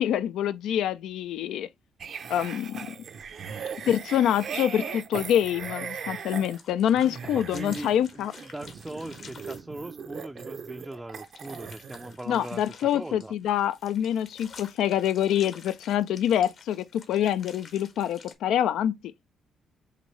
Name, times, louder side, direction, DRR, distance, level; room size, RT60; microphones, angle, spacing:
voice 1, 0.0-1.7 2.3-2.9 3.9-8.3 12.3-19.0, left 10 dB, 80° left, 0.4 m, -26 dB
sound 1, 2.0-12.1 12.4-12.6, right 6 dB, 60° right, 0.6 m, -39 dB
sound 2, 6.3-9.6 11.2-18.3, left 5 dB, 60° left, 1.2 m, -50 dB
voice 2, 7.2-8.3 8.5-13.3, right 1 dB, 10° right, 0.4 m, -40 dB
6.4 x 2.6 x 3.1 m
cardioid pair, 90°, 0 cm